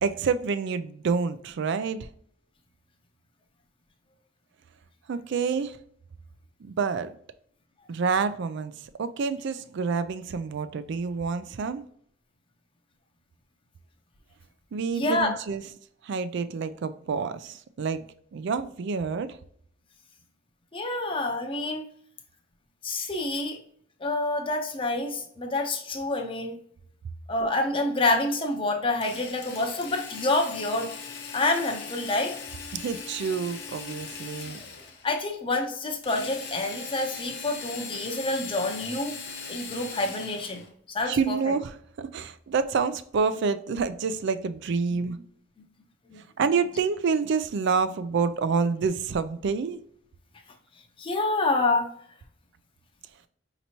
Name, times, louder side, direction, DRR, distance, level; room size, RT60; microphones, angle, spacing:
voice 1, 0.0-2.1 5.1-5.8 6.6-7.1 7.9-8.7 9.0-11.8 14.7-15.6 16.0-18.1 18.3-19.4 20.9-21.0 32.7-34.6 41.1-45.2 46.4-49.8, right 5 dB, 60° right, 0.4 m, -28 dB
voice 2, 15.0-15.4 20.7-21.8 22.8-23.6 24.0-26.6 27.3-30.9 31.3-32.3 35.0-39.2 39.5-41.5 44.9-45.2 46.1-46.2 51.0-51.9, left 2 dB, 25° left, 0.7 m, -27 dB
Drill, 29.0-35.1 36.0-40.7, left 5 dB, 55° left, 0.8 m, -40 dB
5.2 x 2.9 x 2.8 m
head